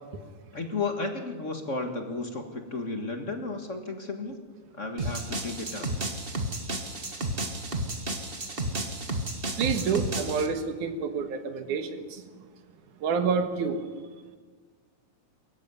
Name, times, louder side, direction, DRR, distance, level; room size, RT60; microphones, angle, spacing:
voice 1, 0.5-4.4 4.7-5.9, left 3 dB, 30° left, 1.5 m, -33 dB
sound 1, 5.0-10.5, right 1 dB, 25° right, 1.3 m, -32 dB
voice 2, 9.6-12.2 13.0-13.9, right 6 dB, 85° right, 3.0 m, -28 dB
22.5 x 14.5 x 9.7 m
omnidirectional pair, 3.4 m